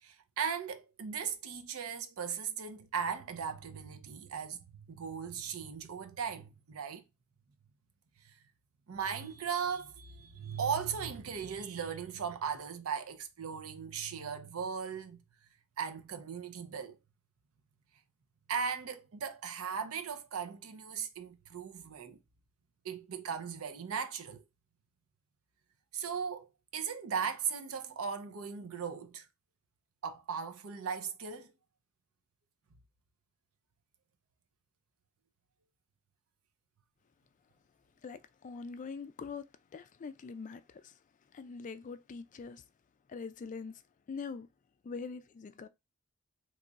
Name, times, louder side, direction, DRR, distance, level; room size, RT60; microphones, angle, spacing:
voice 1, 0.0-7.0 8.2-8.4 8.9-15.2 15.8-17.0 18.5-22.2 22.8-24.4 25.9-26.5 26.7-29.3 30.0-31.5, right 6 dB, 75° right, 0.6 m, -38 dB
voice 2, 38.0-39.4 39.7-41.0 41.3-42.6 43.1-43.8 44.1-44.5 44.8-45.7, left 5 dB, 35° left, 0.3 m, -43 dB
3.0 x 2.4 x 3.9 m
head